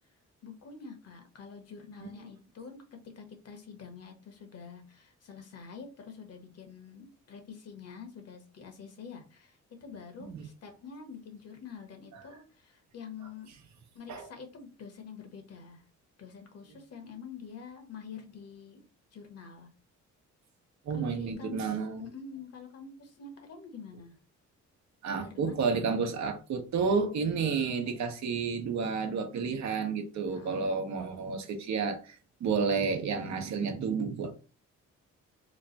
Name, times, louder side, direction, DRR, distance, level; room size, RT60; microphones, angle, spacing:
voice 1, 0.4-2.8 3.1-13.5 13.9-15.8 16.2-18.8 19.1-19.7 20.9-24.1 25.2-25.6 30.3-30.7, left 6 dB, 55° left, 1.1 m, -46 dB
voice 2, 20.9-22.1 25.0-34.3, right 5 dB, 65° right, 0.9 m, -31 dB
3.1 x 2.2 x 3.9 m
cardioid pair, 90°, 30 cm